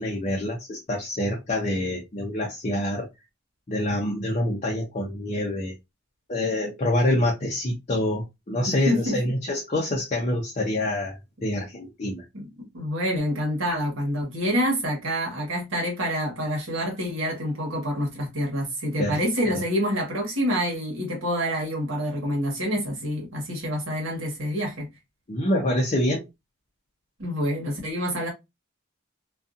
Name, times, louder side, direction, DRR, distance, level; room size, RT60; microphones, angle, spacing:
voice 1, 0.0-3.1 3.7-5.7 6.3-12.2 19.0-19.2 19.5-19.6 25.3-26.2, left 1 dB, 35° left, 0.6 m, -26 dB
voice 2, 8.7-9.2 12.3-12.5 12.7-24.9 27.2-28.3, equal, 70° right, 1.2 m, -27 dB
2.6 x 2.3 x 2.4 m
head